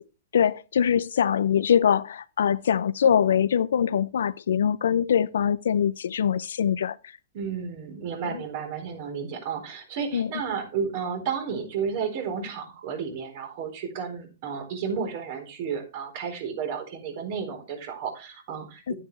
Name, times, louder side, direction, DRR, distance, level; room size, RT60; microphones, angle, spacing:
voice 1, 0.3-7.0 8.2-8.4 10.1-10.3 18.9-19.0, left 8 dB, 75° left, 0.6 m, -23 dB
voice 2, 7.3-18.9, right 6 dB, 50° right, 3.9 m, -32 dB
10.5 x 10.0 x 3.3 m
hypercardioid pair, 120°, 0 cm